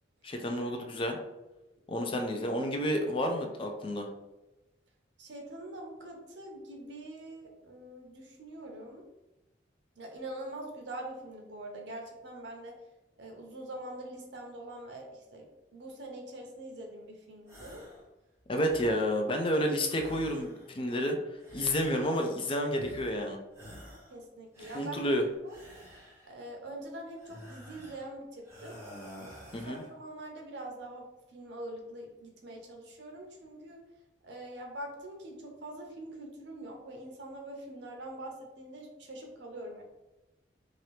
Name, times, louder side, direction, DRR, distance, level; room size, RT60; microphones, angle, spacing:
voice 1, 0.2-1.2 1.9-4.1 18.5-21.2 21.5-23.4 24.7-25.2 29.5-29.8, equal, 30° left, 3 dB, 0.4 m, -30 dB
voice 2, 5.2-9.0 10.0-12.8 13.2-15.5 15.7-17.8 18.6-19.0 24.1-25.0 25.4-25.6 25.9-28.8 29.7-31.1 31.3-33.8 34.2-39.8, right 1 dB, 75° right, 1 dB, 0.7 m, -44 dB
sound 1, 17.5-18.1 18.4-19.3 19.8-20.9 21.4-22.4 22.7-23.3 23.5-24.2 24.5-26.4 27.2-28.1 28.4-30.0, equal, 15° right, 1.1 m, -50 dB
2.8 x 2.6 x 3.2 m, 1.0 s
head